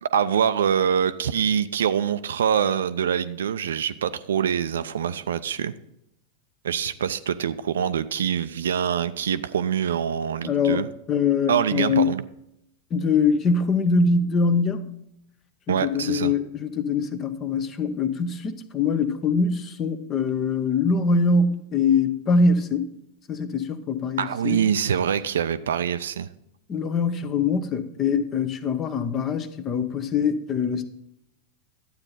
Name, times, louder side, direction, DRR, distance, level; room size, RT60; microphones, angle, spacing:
voice 1, 0.0-5.7 6.6-10.9 11.5-12.2 15.7-16.3 24.2-26.3, right 8 dB, 65° right, 0.5 m, -24 dB
voice 2, 10.4-12.1 12.9-14.9 15.7-22.9 23.3-24.7 26.7-30.9, left 4 dB, 30° left, 0.9 m, -23 dB
12.0 x 8.8 x 4.0 m
figure-of-eight pair, 90°, 0 cm